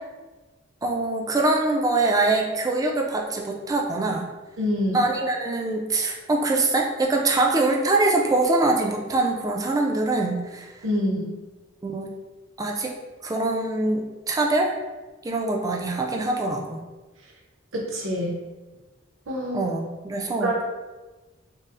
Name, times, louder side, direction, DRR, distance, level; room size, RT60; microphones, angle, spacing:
voice 1, 0.8-4.3 4.9-10.7 11.8-12.1 12.6-12.9 13.2-14.8 15.2-16.8 19.5-20.6, right 2 dB, 20° right, 1 dB, 0.3 m, -24 dB
voice 2, 4.6-5.0 10.8-11.3 17.7-18.3 19.3-19.7 20.4-20.6, equal, 80° right, -2 dB, 0.7 m, -26 dB
5.3 x 2.0 x 2.5 m, 1.2 s
head